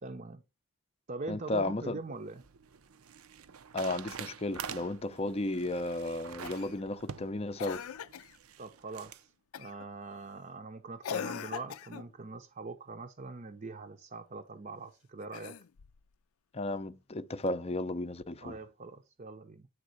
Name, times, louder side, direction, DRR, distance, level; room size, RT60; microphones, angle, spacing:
voice 1, 0.0-0.4 1.1-2.4 8.6-9.2 9.6-15.6 18.4-19.7, right 3 dB, 35° right, 0.7 m, -43 dB
voice 2, 1.3-2.0 3.7-7.8 16.5-18.6, left 2 dB, 30° left, 0.5 m, -34 dB
sound 1, 1.9-9.2, right 7 dB, 80° right, 0.7 m, -47 dB
Cough, 6.4-6.8 7.6-8.4 9.5-9.9 11.0-12.1 15.2-16.0 17.5-17.6, left 8 dB, 80° left, 0.5 m, -40 dB
9.4 x 3.6 x 6.5 m
head